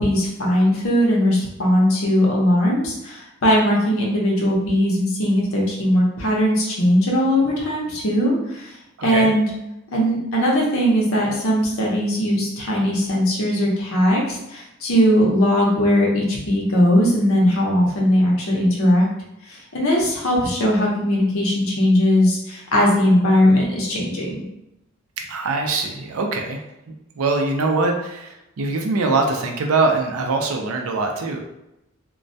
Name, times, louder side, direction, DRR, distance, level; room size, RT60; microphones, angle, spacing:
voice 1, 0.0-8.7 9.0-9.5 9.9-19.1 19.5-24.4, equal, 75° left, -2 dB, 0.7 m, -19 dB
voice 2, 9.0-9.3 25.3-26.6 27.2-31.4, right 3 dB, 85° right, 3 dB, 0.4 m, -22 dB
2.2 x 2.1 x 2.6 m, 0.88 s
head